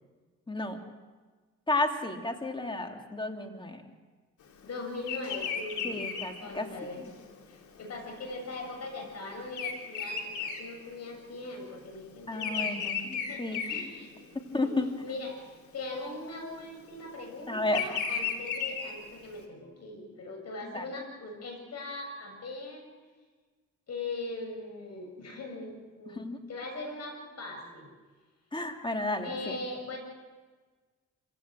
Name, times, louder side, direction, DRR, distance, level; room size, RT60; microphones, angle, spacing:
voice 1, 0.5-0.8 1.7-3.8 5.8-7.1 12.3-13.1 13.4-13.9 14.5-14.9 17.5-18.0 20.6-20.9 26.1-26.4 28.5-29.6, left 2 dB, 15° left, 4 dB, 2.9 m, -32 dB
voice 2, 4.6-6.0 6.4-7.0 7.5-14.1 14.6-14.7 15.0-15.4 15.7-22.9 23.9-26.2 26.5-27.9 29.2-30.0, left 2 dB, 55° left, 3 dB, 7.5 m, -40 dB
Bird vocalization bird call bird song, 5.0-11.5 11.7-14.6 15.1-15.4 16.4-19.4, left 6 dB, 75° left, 3.2 m, -35 dB
26.0 x 17.0 x 7.6 m, 1.4 s
cardioid pair, 90°, 30 cm